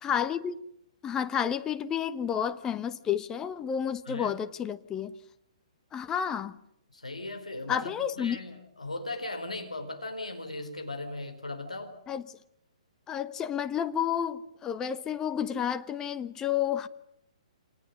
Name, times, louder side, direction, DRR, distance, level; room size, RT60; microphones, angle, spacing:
voice 1, 0.0-0.5 1.0-5.1 5.9-6.6 7.7-8.4 12.1-12.2 13.1-16.9, left 8 dB, 15° left, 1.1 m, -30 dB
voice 2, 6.9-12.0, left 2 dB, 80° left, 4.4 m, -38 dB
30.0 x 26.0 x 6.6 m
figure-of-eight pair, 125°, 4 cm